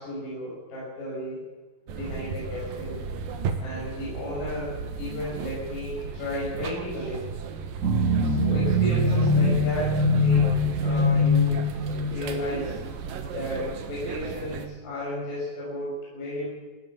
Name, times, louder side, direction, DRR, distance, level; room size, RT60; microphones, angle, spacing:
voice 1, 0.0-1.4 1.9-3.0 3.6-7.3 8.2-10.5 10.8-11.6 12.1-12.7 13.3-16.5, left 1 dB, 60° left, -6 dB, 8.1 m, -33 dB
sound 1, 1.9-14.7, right 5 dB, 70° right, 3.2 m, -35 dB
sound 2, 7.8-12.4, left 1 dB, 25° right, 2.4 m, -22 dB
21.0 x 17.0 x 7.4 m, 1.2 s
omnidirectional pair, 4.4 m